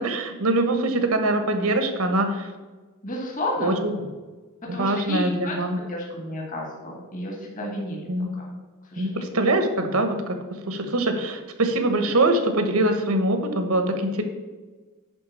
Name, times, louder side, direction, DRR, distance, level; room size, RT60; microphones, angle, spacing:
voice 1, 0.0-2.5 3.6-3.7 4.8-5.8 8.1-8.3 9.0-10.4 10.7-14.2, right 2 dB, 80° right, 7 dB, 1.2 m, -23 dB
voice 2, 3.0-3.8 4.7-5.6 5.9-8.1 8.4-8.6 8.9-9.2, left 1 dB, 35° left, -1 dB, 1.7 m, -31 dB
10.5 x 3.9 x 7.1 m, 1.3 s
head